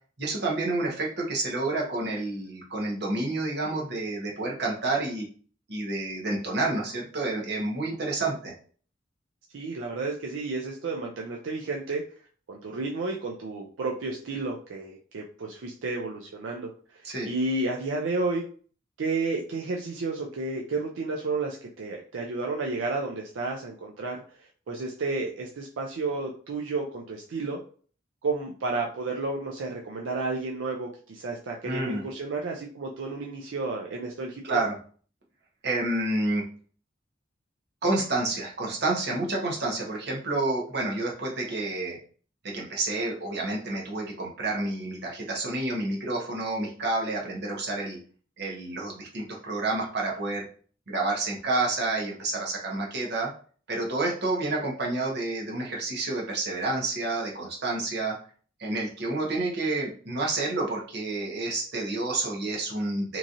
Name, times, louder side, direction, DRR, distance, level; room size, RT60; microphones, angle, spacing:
voice 1, 0.2-5.3 5.7-8.5 17.0-17.3 31.6-32.0 34.4-34.7 35.6-36.4 37.8-42.0 42.4-48.0 48.4-50.4 50.9-53.3 53.7-58.1 58.6-63.2, right 2 dB, 60° right, -2 dB, 0.9 m, -29 dB
voice 2, 9.5-12.0 12.5-18.4 19.0-24.2 24.7-27.6 28.2-34.6, right 3 dB, 80° right, 0 dB, 0.4 m, -31 dB
3.0 x 2.6 x 2.5 m, 0.43 s
head